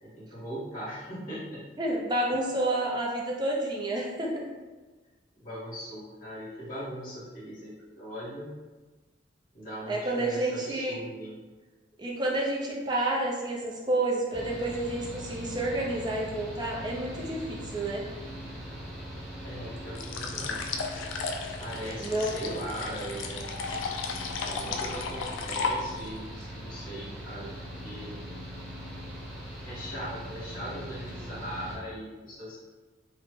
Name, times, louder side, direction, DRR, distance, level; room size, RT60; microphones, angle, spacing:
voice 1, 0.0-1.6 5.4-8.5 9.5-11.4 19.4-20.7 21.6-23.7 24.4-27.5 27.8-28.2 29.6-32.6, equal, 45° left, -10 dB, 1.0 m, -39 dB
voice 2, 1.8-4.5 9.9-11.0 12.0-18.0 22.0-22.4, right 1 dB, 20° right, -2 dB, 0.4 m, -29 dB
Mechanical fan, 14.3-31.8, equal, 5° right, 0.9 m, -41 dB
sound 1, 19.9-26.2, left 4 dB, 80° left, 0.3 m, -34 dB
3.0 x 2.0 x 3.1 m, 1.3 s
head